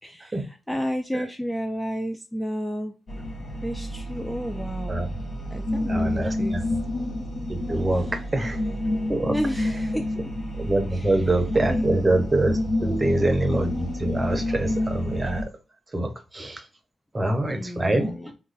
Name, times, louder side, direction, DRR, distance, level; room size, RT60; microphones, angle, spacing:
voice 1, 0.0-2.9 3.6-5.0 5.5-6.7 8.0-8.1 9.3-10.0 10.9-11.3 11.7-11.9 12.8-13.1 17.5-18.3, equal, 10° left, 0.3 m, -31 dB
sound 1, 3.1-15.4, left 1 dB, 50° left, 0.9 m, -29 dB
voice 2, 5.9-6.8 7.5-8.6 9.1-9.4 10.6-15.5 15.9-16.6 17.1-18.1, right 2 dB, 20° right, 0.7 m, -25 dB
3.0 x 2.2 x 4.0 m
cardioid pair, 100°, 0 cm